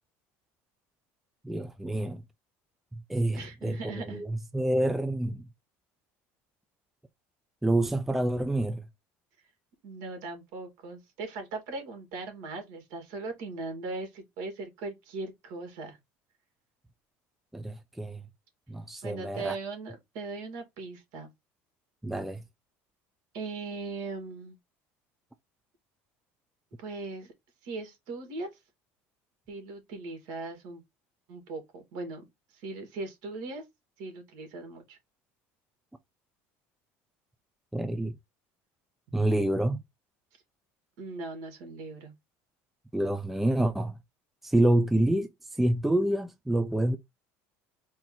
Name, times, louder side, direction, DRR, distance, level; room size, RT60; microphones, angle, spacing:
voice 1, 1.4-2.2 3.1-5.4 7.6-8.8 17.5-18.2 18.7-19.6 22.0-22.4 37.7-38.1 39.1-39.8 42.9-44.0 44.4-45.3 45.6-47.0, right 1 dB, 5° right, 0.4 m, -27 dB
voice 2, 3.4-4.2 9.8-16.0 19.0-21.3 23.3-24.6 26.8-27.3 27.6-28.5 29.5-30.8 31.3-32.3 32.5-33.6 34.0-35.0 41.0-42.1, right 3 dB, 70° right, 2.3 m, -39 dB
4.4 x 2.7 x 3.9 m
cardioid pair, 155°, 6 cm